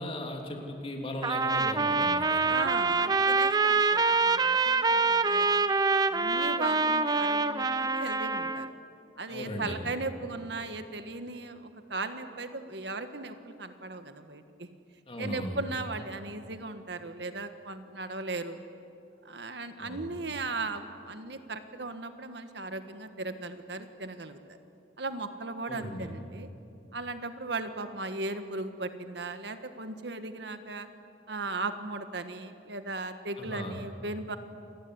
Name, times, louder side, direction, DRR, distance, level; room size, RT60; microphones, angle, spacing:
voice 1, 0.0-2.4 9.3-9.8 15.1-15.6 19.8-20.1 25.7-26.1 33.4-33.8, left 1 dB, 30° left, 2 dB, 3.4 m, -37 dB
Trumpet, 1.2-8.7, right 4 dB, 20° right, 0.7 m, -25 dB
voice 2, 2.5-5.7 6.1-8.7 9.2-14.7 15.2-18.6 19.2-24.4 25.0-26.5 26.9-30.9 31.3-34.4, right 3 dB, 70° right, 9 dB, 1.6 m, -37 dB
28.0 x 20.0 x 9.9 m, 2.6 s
head